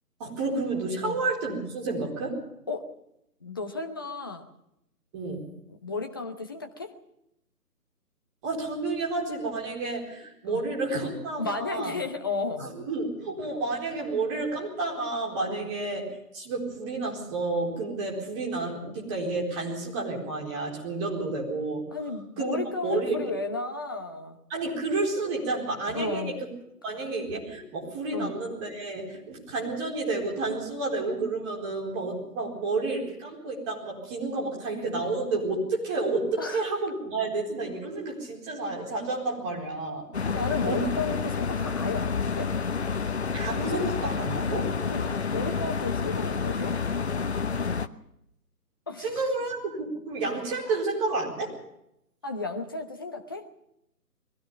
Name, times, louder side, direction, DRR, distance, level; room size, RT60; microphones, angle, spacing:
voice 1, 0.2-2.4 5.1-5.5 8.4-11.9 12.6-16.1 16.3-21.8 22.4-23.2 24.5-26.3 26.8-40.1 40.7-40.8 43.3-44.7 49.0-51.5, right 3 dB, 20° right, -2 dB, 4.4 m, -30 dB
voice 2, 3.4-4.5 5.8-6.9 10.4-10.6 11.4-12.7 15.5-15.7 21.9-24.4 25.9-26.3 28.1-28.3 36.4-36.6 40.3-42.5 44.9-46.7 48.9-49.1 50.7-50.8 52.2-53.5, left 3 dB, 15° left, 4 dB, 0.8 m, -33 dB
sound 1, 40.1-47.9, left 5 dB, 45° left, 0.9 m, -29 dB
22.5 x 16.0 x 7.2 m, 0.80 s
figure-of-eight pair, 150°, 47 cm